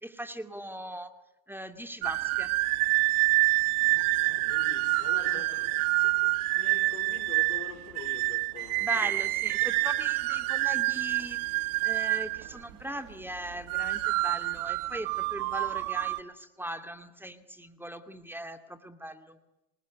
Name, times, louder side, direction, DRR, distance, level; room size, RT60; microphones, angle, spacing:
voice 1, 0.0-1.1 1.5-2.5 8.8-11.4 11.8-19.4, right 1 dB, 5° right, 2.3 m, -39 dB
sound 1, 2.0-12.7 13.5-16.2, right 21 dB, 80° right, 1.1 m, -27 dB
voice 2, 4.2-9.7, left 10 dB, 85° left, 3.9 m, -47 dB
27.0 x 20.5 x 8.4 m
supercardioid pair, 100°, 43 cm